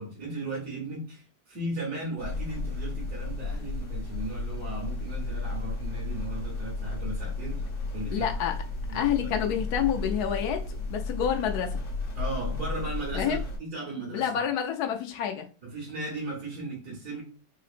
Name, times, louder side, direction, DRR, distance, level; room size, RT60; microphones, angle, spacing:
voice 1, 0.0-8.3 8.9-9.3 12.1-14.4 15.6-17.2, right 2 dB, 75° right, -6 dB, 1.9 m, -36 dB
sound 1, 2.2-13.6, left 3 dB, 60° left, 1.2 m, -33 dB
voice 2, 8.1-8.6 8.9-10.6 10.9-11.7 13.1-13.4 14.1-15.5, left 9 dB, 90° left, 4 dB, 1.2 m, -28 dB
4.0 x 2.8 x 2.5 m, 0.36 s
omnidirectional pair, 1.6 m